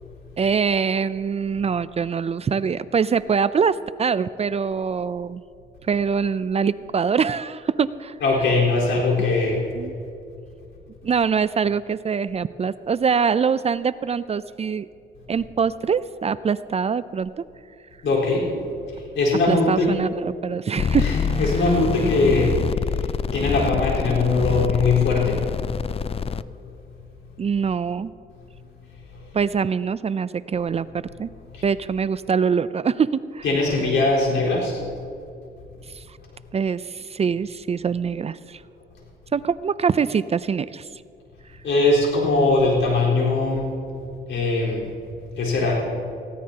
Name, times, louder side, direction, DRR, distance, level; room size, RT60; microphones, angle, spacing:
voice 1, 0.4-5.4 5.9-8.1 9.8-10.0 11.0-14.9 15.3-17.4 19.5-21.1 27.4-28.1 29.3-31.3 31.6-33.4 35.9-36.0 36.5-38.6 39.3-40.9, right 6 dB, 35° right, 16 dB, 0.4 m, -24 dB
voice 2, 8.2-9.6 18.0-18.5 19.0-19.9 21.0-25.4 29.1-29.2 31.5-31.6 33.4-34.8 41.6-43.7 44.3-44.9 45.4-45.8, left 3 dB, 80° left, -4 dB, 4.2 m, -21 dB
sound 1, 20.8-26.4, left 7 dB, 30° left, 0.3 m, -26 dB
19.5 x 15.5 x 2.9 m, 2.4 s
cardioid pair, 85°, 19 cm